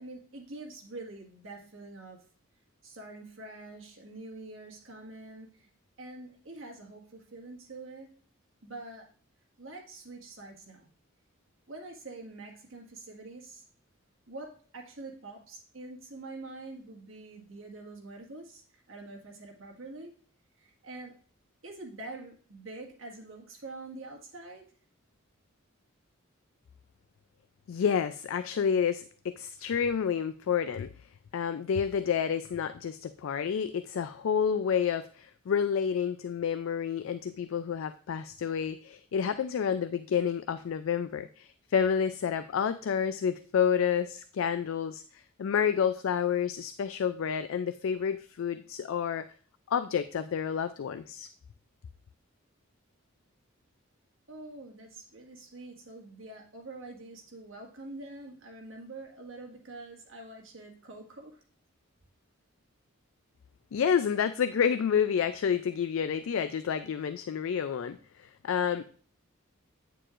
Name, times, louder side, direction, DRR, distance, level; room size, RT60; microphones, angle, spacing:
voice 1, 0.0-2.2 2.8-5.7 6.0-8.1 8.6-9.1 9.6-10.9 11.7-13.6 14.3-20.1 20.6-21.2 21.6-24.6 54.3-61.4, right 2 dB, 65° right, -1 dB, 1.8 m, -45 dB
voice 2, 27.7-30.9 31.3-49.2 49.7-51.3 63.7-68.8, left 7 dB, 70° left, 11 dB, 0.3 m, -29 dB
9.0 x 6.6 x 2.5 m, 0.43 s
head